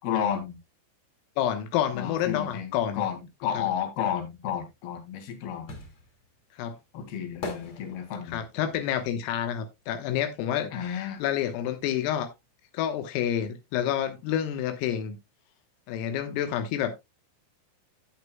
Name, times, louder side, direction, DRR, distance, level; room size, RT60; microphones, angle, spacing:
voice 1, 0.0-0.6 1.9-5.8 6.9-8.4 10.7-11.2, left 9 dB, 55° left, 3.7 m, -32 dB
voice 2, 1.4-3.0 3.6-3.7 6.6-6.8 8.3-12.3 12.7-15.2 15.9-16.9, left 10 dB, 85° left, 3.8 m, -29 dB
sound 1, 4.8-10.7 10.9-12.5 12.8-12.9, left 3 dB, 40° left, 3.0 m, -43 dB
13.0 x 8.4 x 2.2 m
omnidirectional pair, 5.9 m